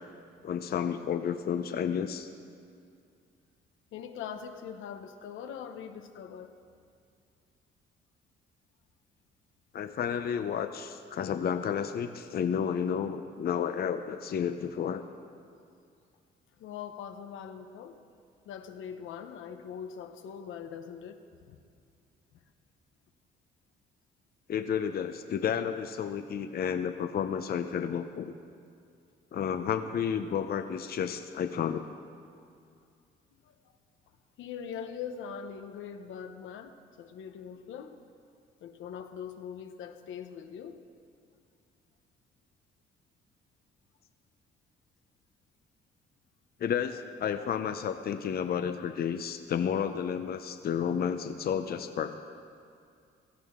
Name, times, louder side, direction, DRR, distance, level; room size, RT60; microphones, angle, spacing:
voice 1, 0.4-2.3 9.7-15.0 24.5-28.3 29.3-31.8 46.6-52.1, left 8 dB, 50° left, 8 dB, 0.6 m, -31 dB
voice 2, 3.9-6.5 16.6-18.0 18.4-21.6 22.3-22.4 32.3-32.5 33.4-33.6 34.4-38.0 38.6-40.8, left 7 dB, 80° left, 7 dB, 0.9 m, -42 dB
17.0 x 13.5 x 3.7 m, 2.3 s
cardioid pair, 90°, 20 cm